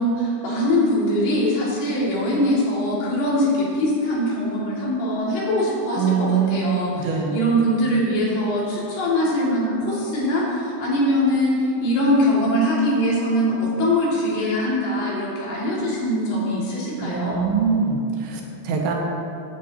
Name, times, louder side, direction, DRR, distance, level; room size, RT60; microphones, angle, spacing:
voice 1, 0.0-17.4, equal, 65° left, -6 dB, 4.2 m, -22 dB
voice 2, 6.0-7.4 17.0-18.9, right 5 dB, 75° right, 0 dB, 2.9 m, -23 dB
16.0 x 9.8 x 2.9 m, 2.6 s
omnidirectional pair, 5.3 m